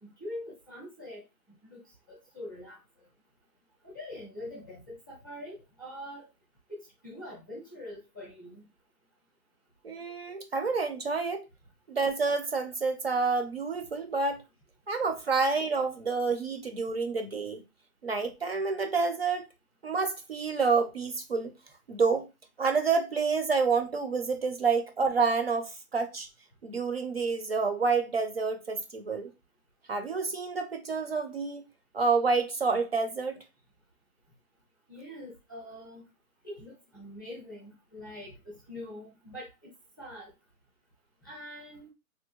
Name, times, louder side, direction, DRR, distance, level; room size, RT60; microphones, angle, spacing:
voice 1, 0.0-1.2 1.7-1.8 2.1-2.8 3.8-6.3 6.7-8.6 34.9-36.1 36.4-40.3 41.2-41.9, left 1 dB, 15° left, 0.5 m, -44 dB
voice 2, 9.8-11.5 11.9-14.4 14.9-17.6 18.0-19.5 19.8-21.5 21.9-22.3 22.6-26.3 26.6-29.3 29.9-31.6 31.9-33.4, right 4 dB, 45° right, 0.5 m, -28 dB
3.4 x 2.3 x 3.0 m
hypercardioid pair, 170°, 45 cm